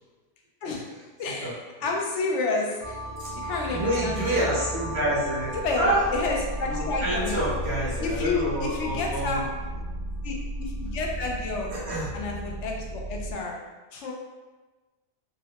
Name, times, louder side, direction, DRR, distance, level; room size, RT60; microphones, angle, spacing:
voice 1, 1.2-1.5 1.8-2.8 3.4-4.6 5.6-7.5 8.0-9.4 10.2-11.7 12.1-13.6 13.9-14.1, left 3 dB, 80° left, 0 dB, 0.9 m, -30 dB
sound 1, 2.8-13.3, right 1 dB, 45° right, 0.7 m, -34 dB
voice 2, 3.2-6.0 6.6-9.4 11.7-12.1, right 1 dB, 65° right, -5 dB, 1.2 m, -28 dB
3.7 x 2.1 x 2.8 m, 1.2 s
omnidirectional pair, 1.2 m